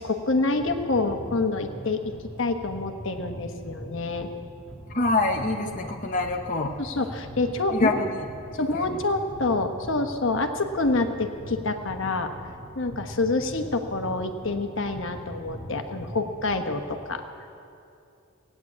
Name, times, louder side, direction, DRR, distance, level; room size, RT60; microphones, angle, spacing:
voice 1, 0.0-2.1 2.4-4.3 5.6-5.9 6.8-8.0 8.5-12.3 12.8-17.2, left 3 dB, 65° left, 6 dB, 1.1 m, -27 dB
sound 1, 0.5-17.0, equal, ahead, 1.9 m, -42 dB
voice 2, 4.9-6.7 7.7-8.0 8.7-8.9, left 2 dB, 35° left, 2 dB, 0.8 m, -25 dB
17.5 x 9.4 x 8.5 m, 2.7 s
head